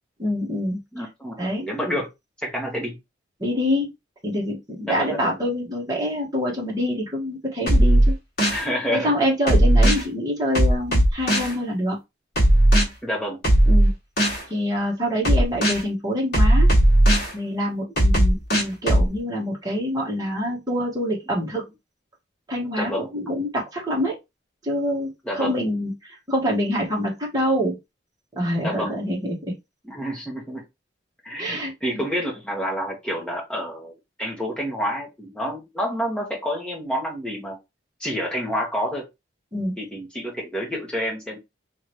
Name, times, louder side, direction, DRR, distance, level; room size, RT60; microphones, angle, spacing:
voice 1, 0.2-0.8 1.4-1.7 3.4-3.9 4.2-8.1 8.9-12.0 13.7-13.9 14.5-16.7 17.3-21.6 22.5-24.1 24.6-27.8 28.3-29.5 31.4-31.7 39.5-39.8, equal, 20° right, 1.6 m, -25 dB
voice 2, 0.9-2.1 2.4-3.0 4.9-5.4 8.4-9.1 13.0-13.4 22.8-23.1 25.2-25.6 28.6-28.9 29.8-30.6 31.2-33.9 34.2-37.6 38.0-39.1 39.8-41.4, equal, 5° left, 1.5 m, -28 dB
sound 1, 7.7-8.6 9.5-10.0 10.5-11.5 12.4-12.8 13.4-14.4 15.2-15.8 16.3-17.3 18.0-19.1, right 1 dB, 50° left, 1.7 m, -16 dB
3.7 x 3.3 x 3.1 m
head